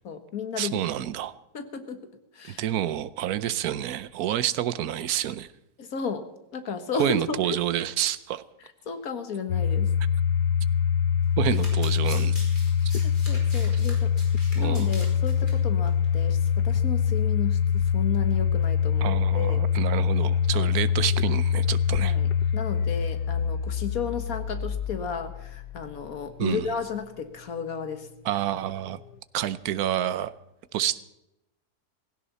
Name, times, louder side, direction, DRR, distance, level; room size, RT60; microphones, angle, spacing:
voice 1, 0.0-0.8 1.5-2.0 2.3-2.7 5.8-6.2 6.5-7.6 8.9-9.9 11.5-11.6 12.9-14.1 14.5-19.7 20.5-20.7 22.0-28.1, left 5 dB, 60° left, 8 dB, 1.8 m, -33 dB
voice 2, 0.6-1.3 2.5-5.5 7.0-8.4 11.4-12.4 14.6-14.9 19.0-22.1 26.4-26.7 28.2-29.0 29.3-30.3 30.7-31.0, right 11 dB, 70° right, 15 dB, 1.2 m, -28 dB
Domestic sounds home sounds, 9.5-26.4, left 7 dB, 80° left, 1.2 m, -24 dB
Domestic sounds home sounds 2, 11.2-15.5 15.9-16.1 16.3-16.4, left 1 dB, 30° left, 5.3 m, -43 dB
16.5 x 16.5 x 4.1 m, 0.90 s
omnidirectional pair, 1.7 m